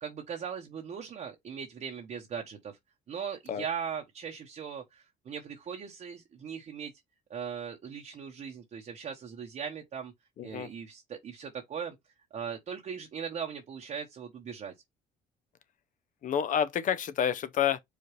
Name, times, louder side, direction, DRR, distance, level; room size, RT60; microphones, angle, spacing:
voice 1, 0.0-2.7 3.1-6.9 7.3-10.1 10.4-12.0 12.3-14.7, right 7 dB, 45° right, 0.9 m, -39 dB
voice 2, 10.4-10.7 16.2-17.8, left 9 dB, 50° left, 0.6 m, -29 dB
4.9 x 2.4 x 3.1 m
cardioid pair, 110°, 17 cm